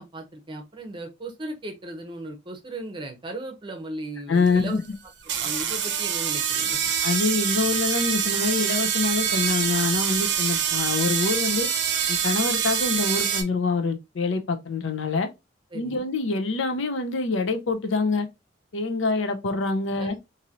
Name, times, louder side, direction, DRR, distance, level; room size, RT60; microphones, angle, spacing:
voice 1, 0.0-4.8 5.4-6.8 15.7-16.1 20.0-20.2, right 1 dB, 25° right, 0.7 m, -36 dB
voice 2, 4.3-4.8 7.0-11.7 12.1-15.3 15.7-18.3 18.7-20.2, left 3 dB, 80° left, 0.6 m, -25 dB
sound 1, 4.5-4.6 5.2-13.4, right 8 dB, 65° right, 0.6 m, -25 dB
3.0 x 2.7 x 2.5 m
head